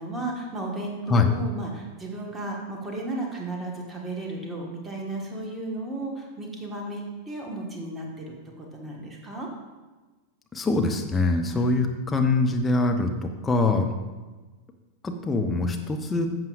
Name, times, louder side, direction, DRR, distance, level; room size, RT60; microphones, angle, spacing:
voice 1, 0.0-9.5 11.5-11.7, right 2 dB, 15° right, -1 dB, 1.7 m, -34 dB
voice 2, 10.5-13.9 15.0-16.3, left 3 dB, 15° left, 3 dB, 0.9 m, -23 dB
11.5 x 7.4 x 2.6 m, 1.2 s
figure-of-eight pair, 90°, 0 cm